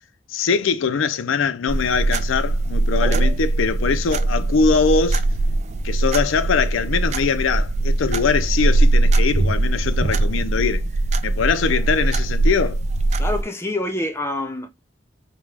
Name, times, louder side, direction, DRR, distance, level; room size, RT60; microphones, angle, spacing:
voice 1, 0.3-5.2 5.8-10.9 11.2-12.8, left 5 dB, 90° left, 0.5 m, -22 dB
sound 1, 1.7-13.4, right 2 dB, 35° right, 0.3 m, -21 dB
voice 2, 13.2-14.8, left 1 dB, 15° left, 0.6 m, -26 dB
5.1 x 2.2 x 3.3 m
head